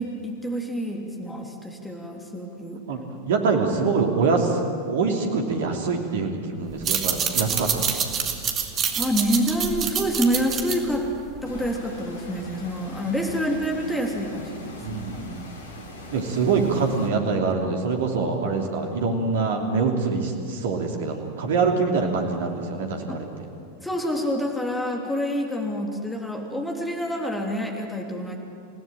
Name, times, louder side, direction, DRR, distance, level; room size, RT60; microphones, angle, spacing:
voice 1, 0.0-2.8 8.9-11.1 11.4-15.0 23.1-23.2 23.8-28.4, equal, 5° left, 1 dB, 3.3 m, -27 dB
voice 2, 3.3-7.9 14.8-15.5 16.1-23.3, right 4 dB, 60° right, 2 dB, 3.0 m, -24 dB
sound 1, 6.7-11.9, right 7 dB, 30° right, 2.5 m, -27 dB
sound 2, 11.4-17.1, left 1 dB, 60° left, 3.9 m, -41 dB
28.5 x 17.5 x 9.0 m, 2.4 s
figure-of-eight pair, 90°, 0 cm